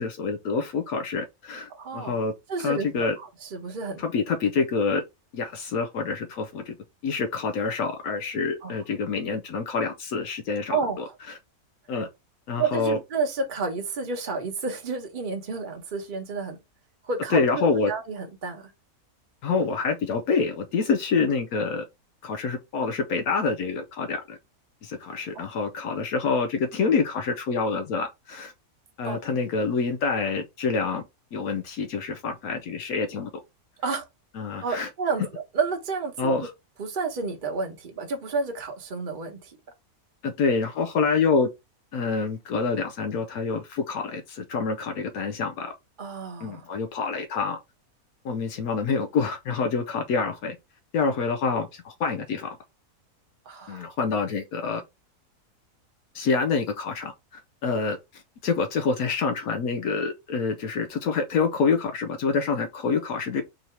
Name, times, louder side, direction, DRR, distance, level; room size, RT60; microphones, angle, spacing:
voice 1, 0.0-2.3 2.6-3.1 4.0-5.0 5.3-6.7 7.0-11.0 11.9-12.1 12.5-13.0 17.3-17.9 19.4-21.8 22.2-24.4 24.8-28.5 29.0-31.0 31.3-33.3 34.3-34.9 36.2-36.5 40.2-41.5 41.9-45.7 46.4-47.6 48.2-50.6 50.9-52.6 53.7-54.8 56.1-63.4, left 4 dB, 75° left, 1.1 m, -27 dB
voice 2, 1.7-2.2 2.5-4.0 8.6-8.7 10.7-11.1 12.6-16.6 17.0-18.7 25.3-25.5 29.0-29.2 33.8-34.0 34.6-36.3 36.8-39.6 46.0-46.7 53.4-53.9, right 4 dB, 40° right, 1.1 m, -30 dB
3.9 x 2.7 x 4.3 m
omnidirectional pair, 1.6 m